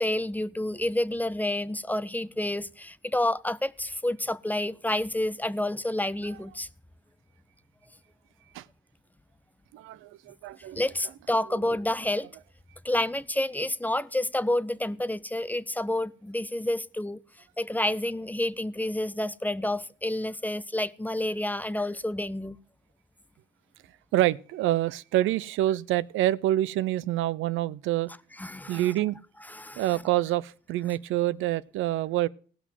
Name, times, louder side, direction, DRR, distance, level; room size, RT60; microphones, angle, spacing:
voice 1, 0.0-6.7 10.8-12.3 12.8-17.2 17.6-22.6 28.4-28.9 29.5-29.9, left 1 dB, 10° left, 0.6 m, -29 dB
voice 2, 9.7-10.8 24.1-28.1 28.7-29.2 29.8-32.3, right 14 dB, 90° right, 0.5 m, -27 dB
17.0 x 6.1 x 7.4 m
cardioid pair, 90°, 20 cm